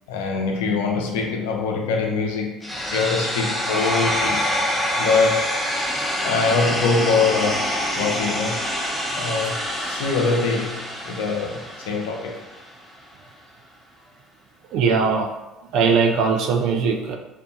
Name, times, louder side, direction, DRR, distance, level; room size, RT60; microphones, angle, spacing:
voice 1, 0.1-4.5 5.0-5.9 6.2-8.7 9.1-12.4, left 4 dB, 75° left, 1 dB, 0.4 m, -24 dB
sound 1, 2.6-12.6, equal, 5° left, 0.7 m, -26 dB
voice 2, 14.7-15.3 15.7-17.2, right 5 dB, 65° right, 3 dB, 0.3 m, -20 dB
2.5 x 2.2 x 2.5 m, 1.0 s
hypercardioid pair, 60°, 0 cm